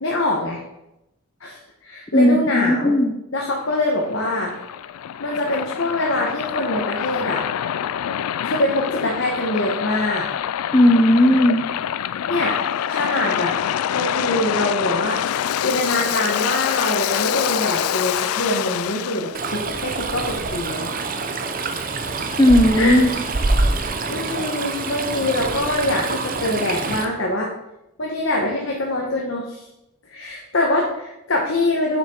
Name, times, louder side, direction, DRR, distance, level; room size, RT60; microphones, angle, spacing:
voice 1, 0.0-0.6 1.4-2.9 3.3-4.5 5.2-7.4 8.4-10.3 12.3-12.6 12.9-13.5 13.9-15.2 15.6-20.9 22.8-23.0 23.7-27.5 28.0-29.6 30.1-32.0, left 1 dB, 65° left, -1 dB, 1.2 m, -24 dB
voice 2, 2.1-3.1 10.7-11.6 22.4-23.1, left 1 dB, 20° left, 8 dB, 0.5 m, -15 dB
Waves surf, 3.6-19.4, left 10 dB, 85° left, 0.3 m, -26 dB
Stream, 19.3-27.0, right 3 dB, 40° right, 0.6 m, -25 dB
7.3 x 5.9 x 4.5 m, 0.87 s
head